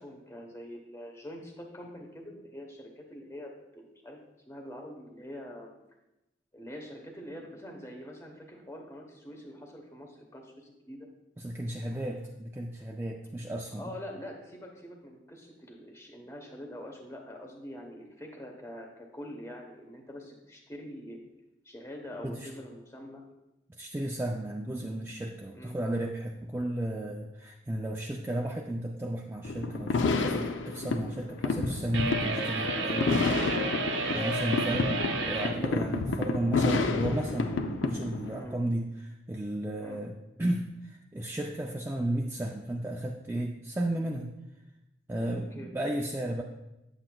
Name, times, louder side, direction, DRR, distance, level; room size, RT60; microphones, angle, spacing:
voice 1, 0.0-4.2 4.5-5.7 6.5-11.1 13.7-21.2 21.6-23.2 25.5-25.8 34.0-34.3 34.7-34.9 38.3-38.6 39.8-40.0 45.5-45.7, equal, 15° left, 1 dB, 0.9 m, -44 dB
voice 2, 11.4-13.9 22.2-22.5 23.8-33.6 34.1-44.3 45.1-46.4, right 1 dB, 10° right, 0 dB, 0.3 m, -34 dB
sound 1, 29.4-38.4, left 3 dB, 80° left, 0.5 m, -30 dB
sound 2, 31.9-35.6, right 2 dB, 75° right, 0.8 m, -31 dB
8.6 x 7.6 x 2.3 m, 0.94 s
head